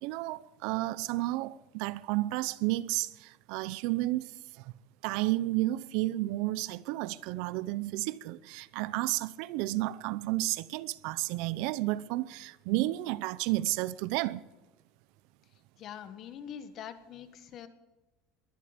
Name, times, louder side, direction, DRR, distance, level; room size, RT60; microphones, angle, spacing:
voice 1, 0.0-4.7 5.0-14.5, right 18 dB, 65° right, 0.6 m, -32 dB
voice 2, 15.4-17.7, left 9 dB, 45° left, 1.5 m, -44 dB
22.0 x 12.0 x 5.2 m
supercardioid pair, 140°, 0 cm